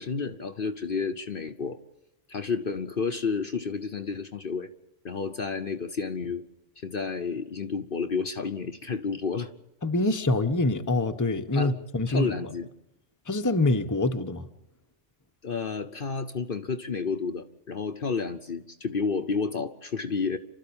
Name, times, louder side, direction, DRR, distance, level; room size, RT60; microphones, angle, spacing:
voice 1, 0.0-1.8 2.3-4.7 5.0-6.4 6.8-9.5 11.5-11.8 12.1-12.7 15.4-20.4, left 5 dB, 50° left, 1.1 m, -31 dB
voice 2, 9.8-12.3 13.3-14.5, left 2 dB, 15° left, 1.0 m, -25 dB
29.0 x 13.0 x 8.8 m
omnidirectional pair, 1.3 m